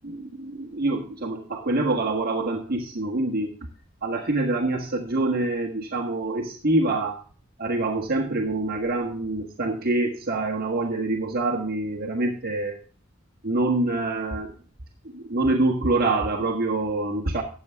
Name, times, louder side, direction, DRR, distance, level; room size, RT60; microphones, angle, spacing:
voice 1, 0.0-3.5 4.0-7.2 7.6-12.7 13.4-14.5 15.1-17.4, right 2 dB, 50° right, 0 dB, 1.6 m, -25 dB
13.5 x 8.4 x 3.5 m, 0.41 s
head